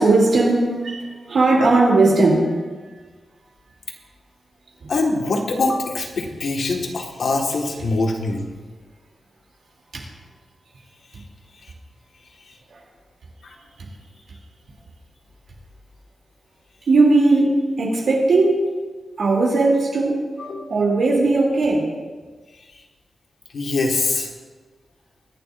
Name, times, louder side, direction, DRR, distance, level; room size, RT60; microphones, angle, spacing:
voice 1, 0.0-2.5 4.8-4.9 9.9-10.0 12.7-12.8 16.9-18.7 19.2-20.3 20.7-21.9, right 2 dB, 65° right, -3 dB, 2.9 m, -18 dB
voice 2, 4.9-8.5 13.4-13.6 20.4-20.6 23.5-24.3, left 3 dB, 60° left, 1 dB, 1.7 m, -23 dB
23.5 x 11.5 x 2.6 m, 1.4 s
wide cardioid pair, 175°, 0 cm